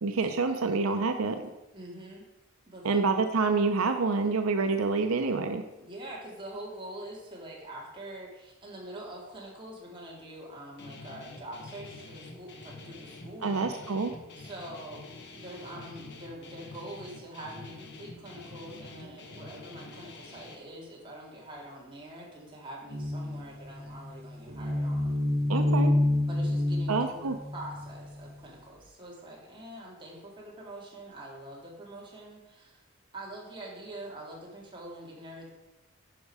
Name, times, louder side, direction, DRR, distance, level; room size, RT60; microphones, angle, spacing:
voice 1, 0.0-1.4 2.8-5.6 13.4-14.1 25.5-25.9 26.9-27.4, right 4 dB, 80° right, 6 dB, 0.6 m, -27 dB
voice 2, 1.7-2.3 2.7-3.0 5.8-13.6 14.4-15.1 15.3-25.1 26.2-32.8 33.1-35.5, right 1 dB, 25° right, -4 dB, 2.4 m, -44 dB
Guitar, 10.8-20.6, left 3 dB, 55° left, 1.3 m, -47 dB
sound 1, 22.9-28.1, left 1 dB, 45° right, 1.1 m, -28 dB
10.0 x 5.4 x 4.8 m, 0.99 s
head